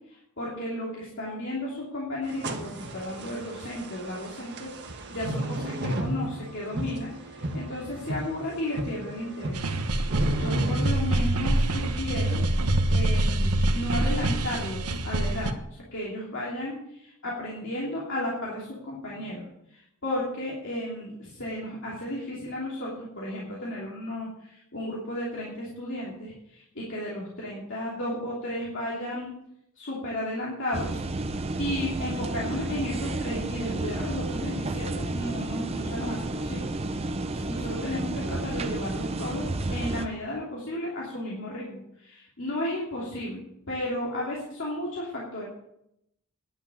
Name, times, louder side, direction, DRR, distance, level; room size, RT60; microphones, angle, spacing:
voice 1, 0.1-9.7 10.3-29.3 29.8-31.3 31.6-45.5, left 1 dB, 55° left, -5 dB, 2.9 m, -34 dB
sound 1, 2.2-10.9, right 1 dB, 50° right, 1.5 m, -33 dB
sound 2, 9.5-15.5, right 1 dB, 85° right, 1.2 m, -25 dB
sound 3, 30.7-40.1, right 2 dB, 25° right, 0.7 m, -31 dB
11.0 x 7.9 x 7.2 m, 0.78 s
head